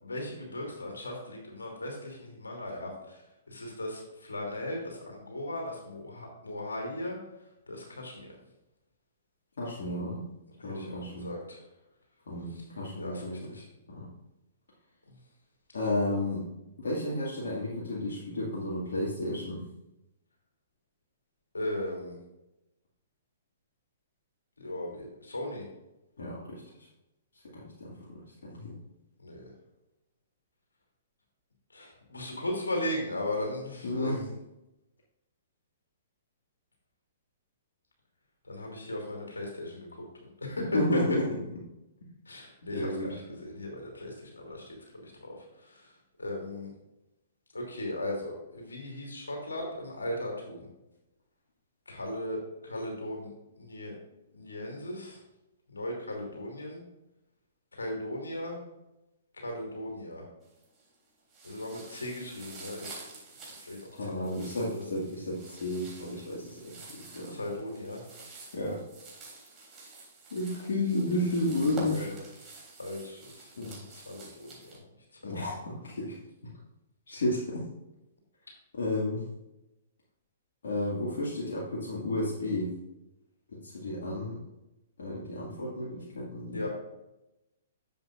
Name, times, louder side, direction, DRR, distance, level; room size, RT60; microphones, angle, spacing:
voice 1, 0.0-3.2 3.5-7.2 7.7-8.3 10.6-11.6 12.5-12.6 13.0-13.7 15.1-15.2 15.7-16.2 21.5-22.2 24.6-25.7 29.2-29.5 31.7-34.3 38.4-39.9 40.2-41.0 42.3-44.8 45.0-45.9 46.2-46.7 47.5-50.7 51.9-53.9 54.3-55.2 55.7-56.8 57.7-58.6 59.4-60.2 61.4-62.9 63.6-64.9 67.3-68.0 71.2-72.2 72.4-72.5 72.8-74.8 75.2-75.3 86.5-86.7, left 1 dB, 85° left, 0 dB, 2.8 m, -37 dB
voice 2, 9.6-10.2 10.6-11.3 12.3-13.5 13.9-14.1 15.7-16.4 16.8-19.6 26.2-26.6 27.5-28.8 33.8-34.2 40.7-41.3 42.7-43.1 64.0-67.4 68.5-68.8 70.3-72.1 73.6-73.8 75.2-76.1 77.1-77.6 78.8-79.2 80.6-82.7 83.6-84.4 85.0-86.7, left 1 dB, 70° left, -6 dB, 2.1 m, -32 dB
sound 1, 60.4-60.9 61.3-74.8, right 2 dB, 25° right, 3.2 m, -47 dB
10.5 x 7.5 x 2.5 m, 0.94 s
hypercardioid pair, 120°, 0 cm